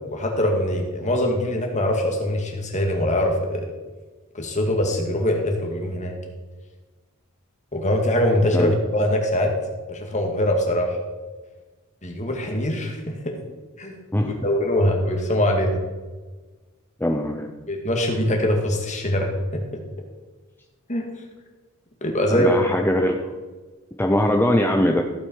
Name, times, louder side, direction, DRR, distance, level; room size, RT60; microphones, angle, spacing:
voice 1, 0.1-3.6 4.3-6.1 7.7-9.5 9.9-11.0 12.0-13.3 13.8-13.9 14.2-15.8 17.7-19.8 20.9-21.1 22.0-22.5, left 1 dB, 35° left, 2 dB, 2.3 m, -23 dB
voice 2, 17.0-17.5 22.3-23.3 24.0-25.0, left 1 dB, 10° left, 3 dB, 0.8 m, -21 dB
15.0 x 8.8 x 4.7 m, 1.3 s
head